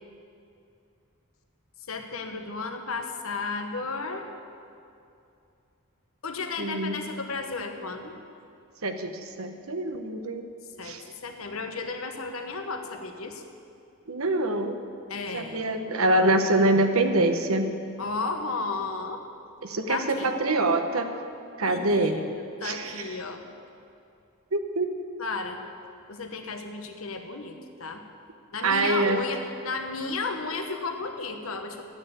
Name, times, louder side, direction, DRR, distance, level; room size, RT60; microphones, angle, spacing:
voice 1, 1.9-4.3 6.2-8.2 10.8-13.4 15.1-15.8 18.0-19.2 19.9-20.3 21.6-23.4 25.2-25.6 26.1-28.0 28.5-31.8, left 3 dB, 75° left, 5 dB, 1.3 m, -33 dB
voice 2, 6.6-7.0 8.8-10.4 10.8-11.0 14.1-14.8 15.3-17.7 19.6-21.1 21.6-22.2 22.6-23.1 24.5-24.9 28.6-29.2, right 2 dB, 85° right, 7 dB, 1.1 m, -25 dB
12.0 x 9.5 x 8.2 m, 2.6 s
head